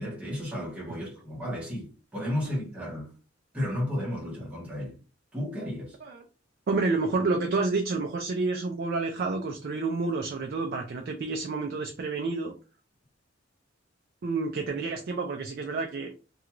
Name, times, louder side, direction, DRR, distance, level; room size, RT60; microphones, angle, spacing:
voice 1, 0.0-3.1 3.5-5.0 5.3-6.0, left 1 dB, 5° right, 1.0 m, -33 dB
voice 2, 6.7-12.5 14.2-16.1, right 3 dB, 55° right, 0.4 m, -29 dB
2.4 x 2.3 x 2.9 m
head